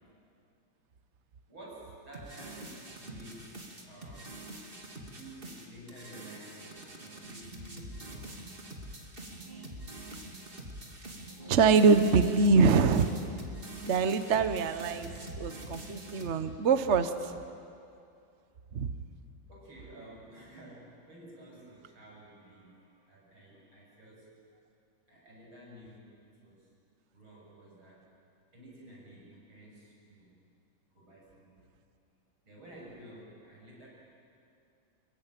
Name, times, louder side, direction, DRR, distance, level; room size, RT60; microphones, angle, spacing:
voice 1, 1.5-3.6 3.8-4.4 4.9-8.4 19.5-24.4 25.1-26.7 27.1-28.1 28.5-30.4 30.9-31.7 32.4-33.9, right 1 dB, 85° right, -4 dB, 8.0 m, -52 dB
sound 1, 2.1-16.3, right 1 dB, 25° right, 2.6 m, -45 dB
voice 2, 11.5-13.1 13.8-17.3 18.7-18.9, right 4 dB, 45° right, 10 dB, 1.1 m, -24 dB
26.0 x 22.0 x 9.2 m, 2.5 s
omnidirectional pair, 2.2 m